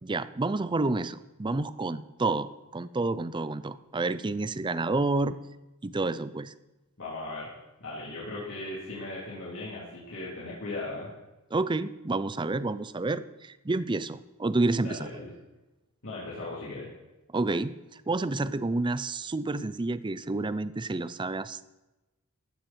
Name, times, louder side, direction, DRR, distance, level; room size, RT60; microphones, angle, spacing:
voice 1, 0.0-5.4 5.8-6.5 11.5-15.1 17.3-21.8, right 2 dB, 20° right, 14 dB, 0.5 m, -29 dB
voice 2, 7.0-7.5 7.8-11.1 14.8-15.3 16.0-16.9, left 2 dB, 65° left, -7 dB, 3.6 m, -37 dB
15.5 x 12.0 x 4.5 m, 1.0 s
head